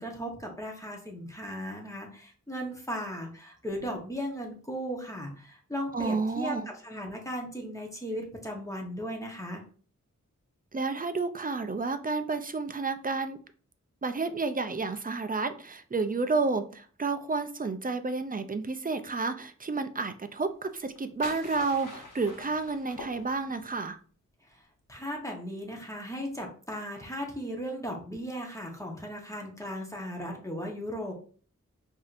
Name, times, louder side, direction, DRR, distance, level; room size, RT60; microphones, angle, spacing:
voice 1, 0.0-9.6 24.5-24.6 24.9-31.1, equal, 10° left, 0 dB, 0.9 m, -37 dB
voice 2, 5.9-6.7 10.7-13.4 14.0-24.0, right 3 dB, 30° right, 10 dB, 0.4 m, -31 dB
sound 1, 20.7-23.7, left 2 dB, 80° left, 1.2 m, -45 dB
4.8 x 2.7 x 2.5 m, 0.42 s
wide cardioid pair, 75°, 31 cm